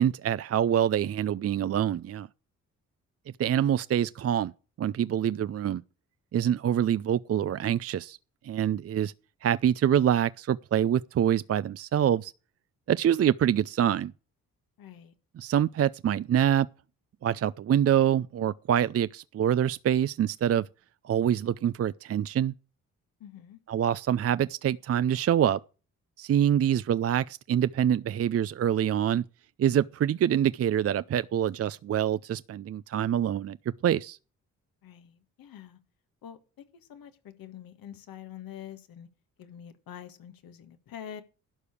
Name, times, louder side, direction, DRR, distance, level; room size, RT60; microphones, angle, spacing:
voice 1, 0.0-2.3 3.4-4.5 4.8-5.8 6.3-8.2 8.4-9.1 9.4-12.3 12.9-14.1 15.4-16.7 17.2-20.7 21.0-22.5 23.7-25.6 26.2-29.2 29.6-33.6 33.8-34.2, right 10 dB, 45° right, 0.5 m, -25 dB
voice 2, 14.8-15.1 23.2-23.6 34.8-35.8 36.2-36.4 36.9-39.1 39.4-41.2, left 9 dB, 75° left, 1.7 m, -45 dB
12.0 x 4.9 x 8.3 m
supercardioid pair, 50°, 35 cm